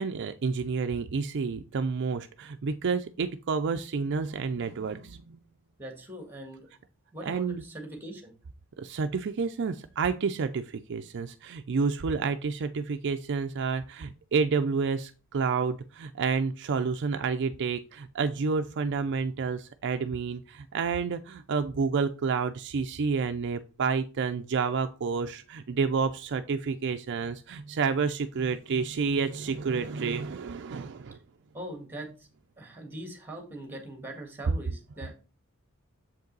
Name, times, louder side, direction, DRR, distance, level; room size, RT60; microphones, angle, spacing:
voice 1, 0.0-5.4 7.2-7.6 8.8-31.2, right 5 dB, 55° right, 8 dB, 0.4 m, -29 dB
voice 2, 5.8-6.7 7.1-8.3 31.5-32.3 32.6-35.1, right 1 dB, 10° right, 3 dB, 1.8 m, -41 dB
7.3 x 5.3 x 3.9 m, 0.33 s
head